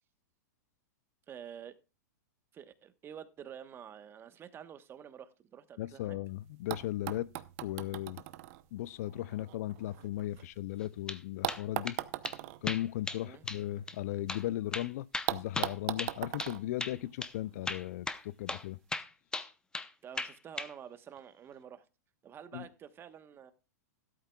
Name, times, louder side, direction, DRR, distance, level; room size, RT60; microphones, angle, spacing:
voice 1, 1.3-1.8 2.5-6.2 13.2-13.5 20.0-21.8 22.2-23.5, right 8 dB, 25° right, 1.2 m, -49 dB
voice 2, 5.8-7.3 7.6-8.2 8.7-12.0 12.6-18.8 22.5-22.7, left 14 dB, 60° left, 0.5 m, -37 dB
sound 1, 6.2-6.3 6.7-10.8 11.4-14.4 14.7-14.8 15.3-17.7 18.6-18.7, right 17 dB, 50° right, 0.8 m, -40 dB
sound 2, 10.8-11.2 11.5-12.0 12.2-12.4 12.7-13.2 13.5-13.6 13.9-14.0 14.3-14.4 14.7-16.5 16.8-17.0 17.2-17.3 17.7-18.2 18.5-18.6 18.9-19.9 20.2-20.7, left 3 dB, 10° left, 0.7 m, -37 dB
14.0 x 12.5 x 2.3 m
hypercardioid pair, 115°, 9 cm